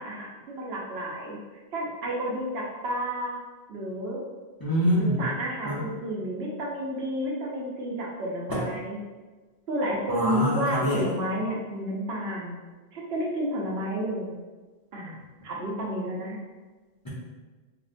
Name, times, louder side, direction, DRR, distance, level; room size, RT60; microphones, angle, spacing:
voice 1, 0.0-1.4 1.7-3.4 3.7-4.2 4.9-9.0 9.7-12.5 12.9-14.3 14.9-16.4, equal, 80° right, -3 dB, 0.9 m, -31 dB
voice 2, 4.6-5.2 5.6-5.8 8.5-8.6 10.1-11.0, equal, 30° left, -7 dB, 0.5 m, -25 dB
3.6 x 2.1 x 2.5 m, 1.3 s
omnidirectional pair, 1.1 m